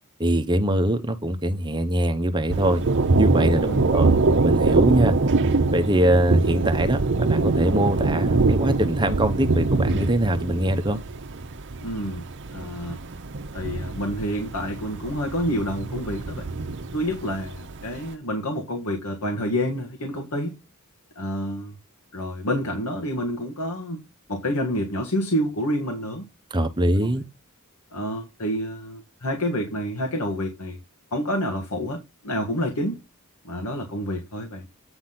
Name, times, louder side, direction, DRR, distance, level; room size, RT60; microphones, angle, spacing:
voice 1, 0.2-2.8 3.2-4.1 4.4-5.1 5.7-11.0 26.5-27.2, right 1 dB, 20° right, 0.8 m, -22 dB
Thunder, 2.5-18.0, right 3 dB, 55° right, 0.8 m, -24 dB
voice 2, 3.5-3.8 11.8-12.2 12.5-13.0 13.5-16.5 16.9-20.6 21.1-21.8 22.1-24.0 24.3-26.3 27.0-27.2 27.9-30.8 31.1-33.0 33.4-34.7, equal, 85° left, 1.7 m, -28 dB
8.8 x 3.9 x 5.9 m
head